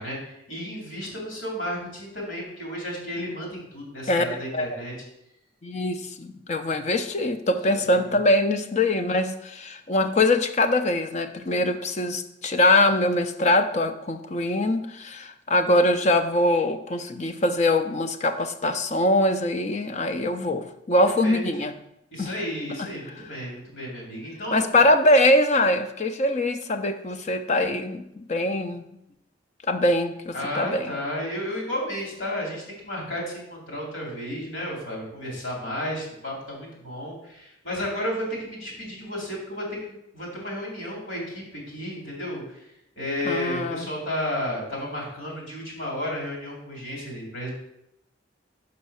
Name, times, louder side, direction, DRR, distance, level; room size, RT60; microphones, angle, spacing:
voice 1, 0.0-4.9 7.7-8.0 21.0-21.4 22.1-24.9 30.3-39.7 40.1-42.6 43.0-47.5, left 1 dB, 80° left, -2 dB, 3.0 m, -32 dB
voice 2, 5.6-21.7 22.2-22.3 24.5-28.8 29.7-30.9 43.2-43.9, left 1 dB, 35° left, 7 dB, 0.5 m, -23 dB
5.6 x 5.3 x 5.6 m, 0.83 s
head